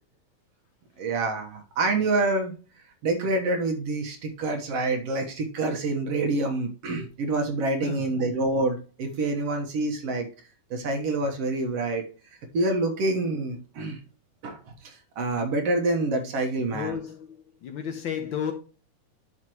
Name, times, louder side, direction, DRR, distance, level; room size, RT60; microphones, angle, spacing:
voice 1, 1.0-2.5 3.0-10.3 10.7-12.0 12.5-14.0 14.4-14.6 14.8-17.0, right 2 dB, 60° right, 2.2 m, -27 dB
voice 2, 7.8-8.1 16.7-18.5, left 8 dB, 65° left, 1.2 m, -33 dB
11.0 x 5.8 x 3.0 m
omnidirectional pair, 3.3 m